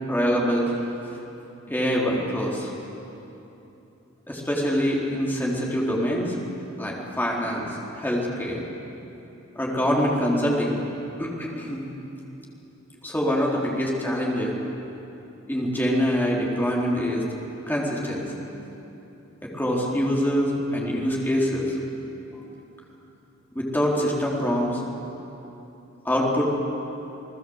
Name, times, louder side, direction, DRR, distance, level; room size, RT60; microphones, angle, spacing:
voice 1, 0.1-0.7 1.7-2.7 4.3-6.4 6.8-8.6 9.6-10.8 11.2-11.9 13.0-14.5 15.5-17.2 17.7-18.6 19.6-21.8 22.4-22.5 23.5-24.8 26.0-26.4, equal, 10° left, -3 dB, 4.0 m, -25 dB
29.5 x 18.5 x 8.1 m, 3.0 s
head